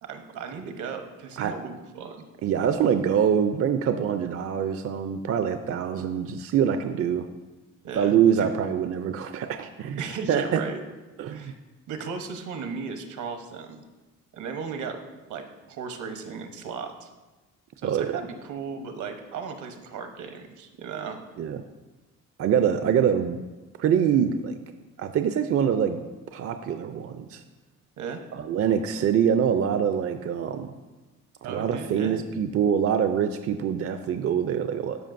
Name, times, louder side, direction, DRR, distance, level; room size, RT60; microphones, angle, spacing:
voice 1, 0.0-2.2 7.8-8.5 10.0-10.8 11.3-11.6 11.9-13.8 14.3-15.0 15.3-17.1 17.8-21.2 28.0-28.2 31.4-32.2, right 5 dB, 75° right, 6 dB, 1.0 m, -36 dB
voice 2, 2.4-7.3 7.9-10.0 10.3-10.6 11.2-11.5 17.8-18.2 21.4-21.6 22.4-23.4 23.8-24.6 25.0-26.1 26.3-27.4 28.3-30.7 31.4-35.0, right 8 dB, 50° right, 8 dB, 0.5 m, -24 dB
13.0 x 5.1 x 2.6 m, 1.2 s
cardioid pair, 90°, 30 cm